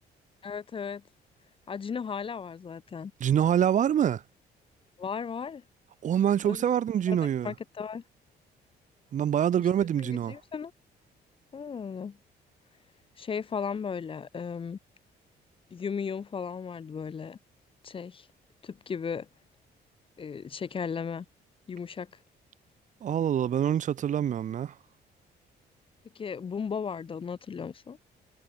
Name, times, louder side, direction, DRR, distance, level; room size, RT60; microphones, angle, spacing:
voice 1, 0.4-1.0 1.7-3.1 5.0-5.6 6.4-6.8 7.1-7.2 7.4-8.0 10.0-10.7 11.5-12.2 13.2-14.8 15.7-17.4 17.8-18.3 18.6-19.3 20.2-21.3 21.7-22.1 26.1-28.0, left 6 dB, 30° left, 4.3 m, -35 dB
voice 2, 3.2-4.2 6.0-7.5 9.1-10.4 23.0-24.8, right 9 dB, 45° right, 2.0 m, -25 dB
cardioid pair, 160°, 17 cm